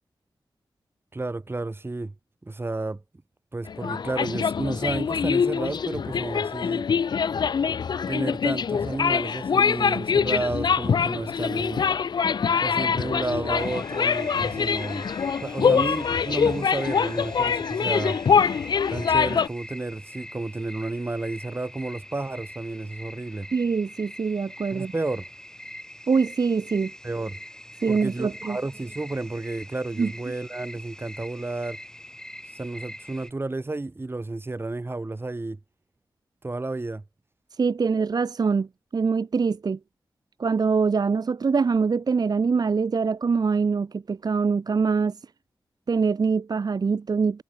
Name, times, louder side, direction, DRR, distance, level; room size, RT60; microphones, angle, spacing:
voice 1, 1.1-2.1 2.4-3.0 3.5-6.8 8.1-11.8 12.6-15.1 15.4-18.2 18.9-23.5 24.7-25.3 27.0-27.4 27.9-31.8 32.5-35.6 36.4-37.0, right 2 dB, 25° right, 1.8 m, -31 dB
sound 1, 3.7-19.5, left 6 dB, 60° left, 0.4 m, -24 dB
sound 2, 13.6-33.3, left 1 dB, 10° left, 6.5 m, -43 dB
voice 2, 23.5-24.9 26.1-26.9 27.8-28.6 30.0-30.1 37.5-39.8 40.4-45.2 45.9-47.4, right 5 dB, 50° right, 0.6 m, -24 dB
wide cardioid pair, 85°, 8 cm